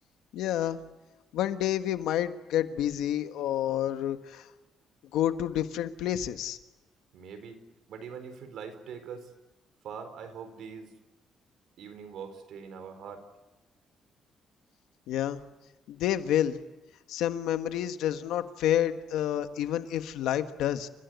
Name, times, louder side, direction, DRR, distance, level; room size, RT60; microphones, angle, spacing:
voice 1, 0.3-0.8 1.3-4.5 5.1-6.6 15.1-15.4 15.9-16.6 17.1-20.9, left 11 dB, 90° left, 9 dB, 1.5 m, -29 dB
voice 2, 7.1-7.6 7.9-9.3 9.8-10.9 11.8-13.3, right 6 dB, 75° right, 8 dB, 4.5 m, -42 dB
29.5 x 16.0 x 9.5 m, 1.1 s
cardioid pair, 90°, 0 cm